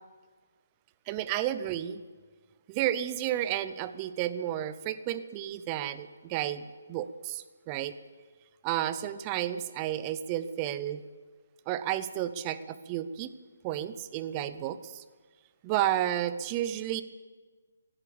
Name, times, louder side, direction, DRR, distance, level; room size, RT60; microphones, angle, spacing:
voice 1, 1.1-2.0 2.7-7.9 8.6-11.0 11.7-13.3 13.6-15.0 15.6-17.0, right 12 dB, 20° right, 14 dB, 0.5 m, -32 dB
17.0 x 11.0 x 7.0 m, 1.4 s
hypercardioid pair, 170°, 0 cm